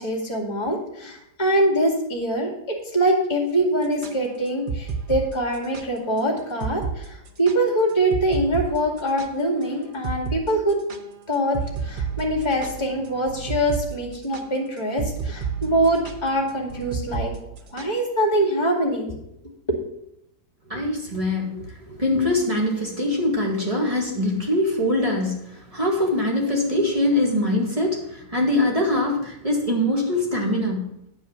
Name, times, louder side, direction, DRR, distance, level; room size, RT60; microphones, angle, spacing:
voice 1, 0.0-10.8 11.3-17.3 17.7-19.1, right 1 dB, 15° left, 0 dB, 2.2 m, -24 dB
sound 1, 3.8-5.9 6.2-6.3 6.6-7.0 7.3-9.6 10.0-10.4 10.7-18.0, right 6 dB, 65° right, 0.5 m, -31 dB
voice 2, 20.7-30.9, left 1 dB, 20° right, -1 dB, 1.9 m, -23 dB
9.9 x 4.9 x 7.2 m, 0.79 s
omnidirectional pair, 1.8 m